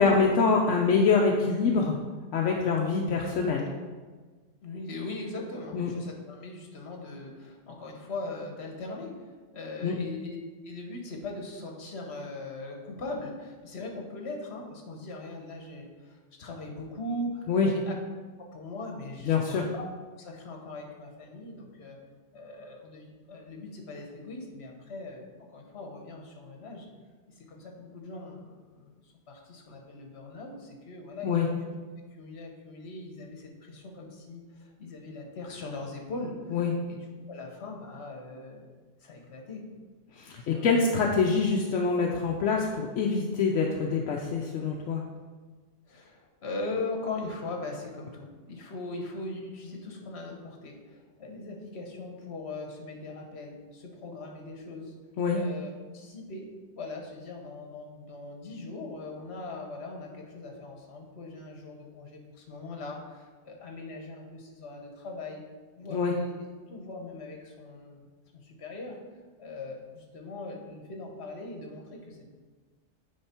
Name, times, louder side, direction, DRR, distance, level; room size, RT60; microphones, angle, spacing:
voice 1, 0.0-2.0 2.3-3.7 5.7-5.9 9.8-10.0 17.5-17.7 19.3-19.7 31.2-31.5 36.5-36.7 40.1-45.0 55.2-55.4 65.9-66.1, left 4 dB, 80° left, 0 dB, 1.0 m, -25 dB
voice 2, 4.6-9.2 9.5-10.4 10.6-17.9 18.5-19.9 20.2-22.0 22.3-25.2 25.5-26.9 27.4-29.0 29.3-31.7 32.2-36.6 36.9-37.0 37.3-38.6 39.0-39.6 40.5-40.7 45.9-54.9 55.3-56.5 56.7-65.4 65.8-66.3 66.7-68.1 68.4-68.9 69.4-72.3, left 2 dB, 60° left, 1 dB, 1.3 m, -40 dB
8.7 x 3.6 x 4.4 m, 1.4 s
omnidirectional pair, 1.2 m